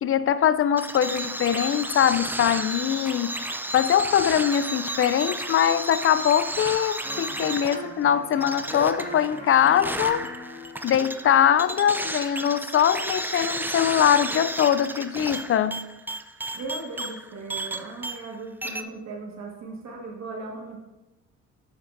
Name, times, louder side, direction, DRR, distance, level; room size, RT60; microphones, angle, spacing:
voice 1, 0.0-3.3 3.7-10.3 10.8-15.8, left 9 dB, 45° left, 0.4 m, -22 dB
sound 1, 0.8-18.4 18.6-18.8, right 2 dB, 5° right, 0.5 m, -33 dB
Electric guitar, 7.0-12.6, left 1 dB, 25° left, 2.4 m, -41 dB
voice 2, 16.5-20.8, right 3 dB, 65° right, 1.8 m, -37 dB
12.0 x 7.2 x 2.6 m
cardioid pair, 90°, 30 cm